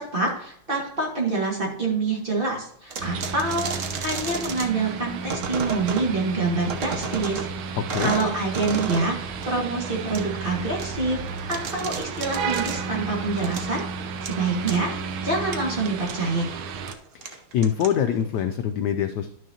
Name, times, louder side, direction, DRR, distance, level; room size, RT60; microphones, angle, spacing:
voice 1, 0.0-7.5 8.0-11.2 11.5-13.8 14.2-14.9 15.2-16.5, right 3 dB, 25° right, -2 dB, 1.8 m, -26 dB
sound 1, 2.9-4.7 5.3-6.1 6.7-7.5 7.9-9.1 9.4-9.5 10.1-10.2 10.8-10.9 11.3-12.8 13.3-13.8 14.3-14.4 14.7-14.8 15.5-16.1 16.8-16.9 17.2-18.2, right 5 dB, 60° right, 0.8 m, -32 dB
sound 2, 3.0-16.9, right 5 dB, 75° right, 1.5 m, -33 dB
voice 2, 7.8-8.1 17.1-19.3, left 9 dB, 80° left, 8 dB, 0.9 m, -25 dB
11.5 x 6.3 x 2.8 m, 0.65 s
omnidirectional pair, 2.3 m